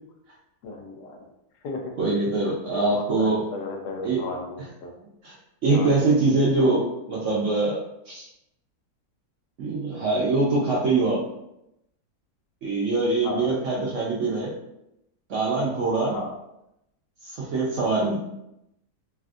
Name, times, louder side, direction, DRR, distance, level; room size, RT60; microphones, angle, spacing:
voice 1, 0.6-1.2 1.6-1.8 2.7-4.9 5.7-5.9 13.2-13.5 16.1-16.3, left 2 dB, 80° left, 2 dB, 1.2 m, -34 dB
voice 2, 2.0-3.4 4.0-4.2 4.6-4.7 5.0-5.3 5.6-8.3 9.6-11.3 12.6-14.5 15.3-16.2 17.2-18.2, right 3 dB, 65° right, -5 dB, 0.7 m, -23 dB
3.3 x 2.5 x 2.4 m, 0.83 s
omnidirectional pair, 1.8 m